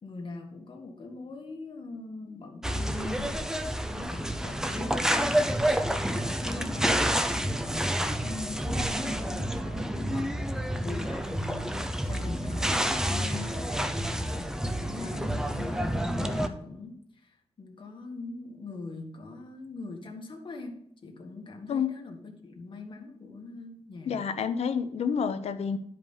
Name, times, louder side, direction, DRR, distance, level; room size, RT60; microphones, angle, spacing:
voice 1, 0.0-3.5 3.9-24.3, left 3 dB, 50° left, 1 dB, 1.7 m, -42 dB
sound 1, 2.6-16.5, equal, 5° right, 0.6 m, -29 dB
voice 2, 24.1-25.8, left 6 dB, 80° left, 11 dB, 0.7 m, -29 dB
10.5 x 5.1 x 5.4 m, 0.69 s
wide cardioid pair, 145°, 11 cm